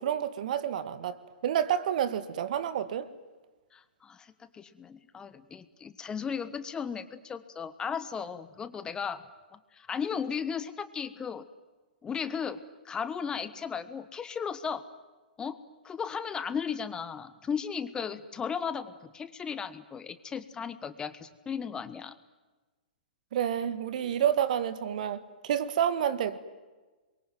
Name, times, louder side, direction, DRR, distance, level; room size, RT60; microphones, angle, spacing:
voice 1, 0.0-3.1 23.3-26.4, right 9 dB, 55° right, 1.9 m, -29 dB
voice 2, 3.7-9.2 9.5-11.4 12.0-12.6 12.8-14.8 15.4-22.1, left 6 dB, 15° left, 1.4 m, -36 dB
27.5 x 23.0 x 9.3 m
figure-of-eight pair, 120°, 5 cm